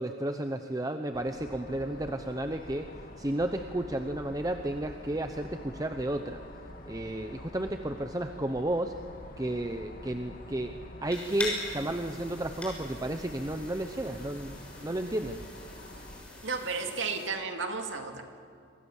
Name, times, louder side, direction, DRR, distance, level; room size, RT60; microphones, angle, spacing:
voice 1, 0.0-2.9 3.2-6.4 6.9-8.9 9.4-10.7 11.0-15.4, right 1 dB, 20° right, 7 dB, 0.8 m, -32 dB
sound 1, 1.1-16.2, left 1 dB, 45° left, 2.4 m, -47 dB
sound 2, 11.1-17.3, left 1 dB, 5° left, 6.7 m, -42 dB
voice 2, 16.4-18.2, right 4 dB, 70° right, 5 dB, 2.4 m, -33 dB
27.5 x 23.5 x 7.3 m, 2.3 s
head